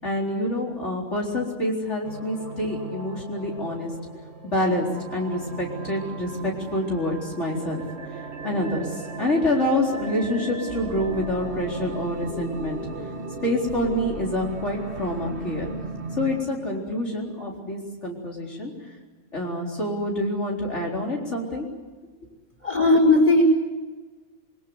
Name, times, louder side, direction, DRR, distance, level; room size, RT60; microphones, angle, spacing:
voice 1, 0.0-3.9 4.4-7.8 8.1-12.8 13.4-15.7 16.2-18.7 19.3-21.7, left 1 dB, 70° left, -2 dB, 4.5 m, -27 dB
sound 1, 2.0-16.4, right 4 dB, 60° right, 2.2 m, -37 dB
voice 2, 22.6-23.4, left 2 dB, 30° left, 3 dB, 5.1 m, -17 dB
27.5 x 22.5 x 8.1 m, 1.3 s
omnidirectional pair, 1.3 m